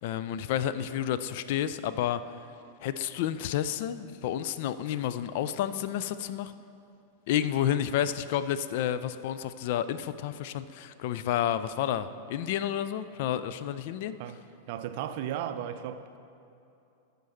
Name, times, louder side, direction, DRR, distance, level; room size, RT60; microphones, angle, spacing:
voice 1, 0.0-2.2 2.8-6.5 7.3-14.2, left 10 dB, 50° left, 0.3 m, -30 dB
voice 2, 14.2-16.2, right 10 dB, 50° right, 0.5 m, -36 dB
14.0 x 5.2 x 4.4 m
figure-of-eight pair, 90°, 0 cm